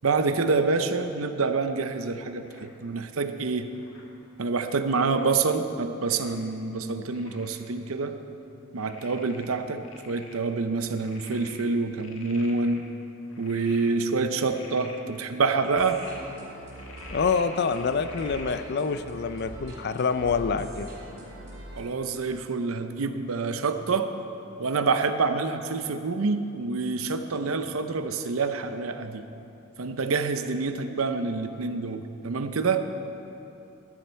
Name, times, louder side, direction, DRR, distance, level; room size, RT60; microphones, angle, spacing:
voice 1, 0.0-3.7 4.4-8.2 8.7-12.9 13.4-16.0 21.8-24.1 24.6-29.2 29.8-32.8, right 4 dB, 85° right, 8 dB, 0.7 m, -27 dB
Frog, 2.4-2.8 3.7-4.1 4.8-5.3 6.1-6.5 7.1-7.6 8.1-8.2 8.8-10.4 10.7-12.8 13.3-13.9 14.3-15.0 15.5-16.2 16.7-18.5 19.1-19.4, left 3 dB, 70° left, 1.5 m, -47 dB
sound 1, 15.7-21.8, right 1 dB, 55° right, 2.8 m, -42 dB
voice 2, 17.1-20.9, left 5 dB, 55° left, 11 dB, 0.5 m, -26 dB
14.0 x 10.0 x 4.4 m, 2.8 s
head